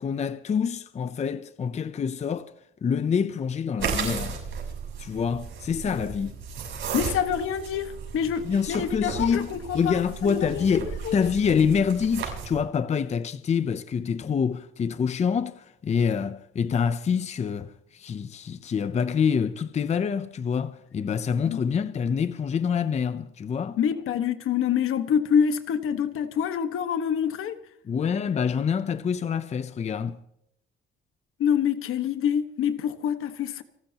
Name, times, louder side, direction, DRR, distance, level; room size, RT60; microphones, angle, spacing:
voice 1, 0.0-2.5 2.8-4.4 5.0-6.3 8.4-9.5 9.7-23.8 27.8-30.2, left 6 dB, 30° left, 0.6 m, -26 dB
sound 1, 3.8-12.6, right 6 dB, 75° right, 7.0 m, -35 dB
voice 2, 6.9-10.7 11.0-11.2 21.5-21.6 23.8-27.6 31.4-33.6, left 8 dB, 90° left, 1.5 m, -26 dB
30.0 x 12.5 x 2.9 m
cardioid pair, 140°, 21 cm